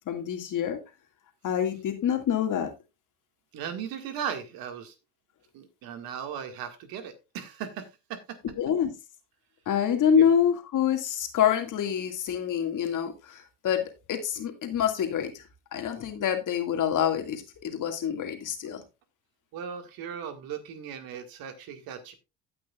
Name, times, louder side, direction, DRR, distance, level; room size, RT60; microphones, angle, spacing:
voice 1, 0.1-0.8 1.4-2.7 8.6-8.9 9.7-15.4 15.7-18.8, left 8 dB, 55° left, 6 dB, 2.1 m, -26 dB
voice 2, 3.5-4.9 5.5-8.4 10.1-10.3 19.5-22.1, right 8 dB, 70° right, 7 dB, 1.9 m, -37 dB
16.5 x 5.9 x 2.4 m, 0.26 s
supercardioid pair, 80°, 37 cm